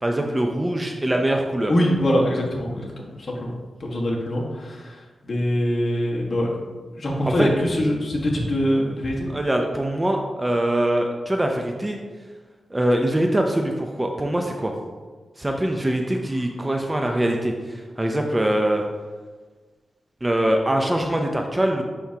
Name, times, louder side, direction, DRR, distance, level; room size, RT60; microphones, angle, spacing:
voice 1, 0.0-1.7 7.3-7.5 9.3-12.0 12.7-14.7 15.4-18.8 20.2-21.8, right 1 dB, 15° right, 3 dB, 0.5 m, -23 dB
voice 2, 1.7-3.5 3.8-6.6 6.9-9.3, equal, 45° left, -3 dB, 1.4 m, -23 dB
10.5 x 3.5 x 2.8 m, 1.4 s
wide cardioid pair, 105°, 0 cm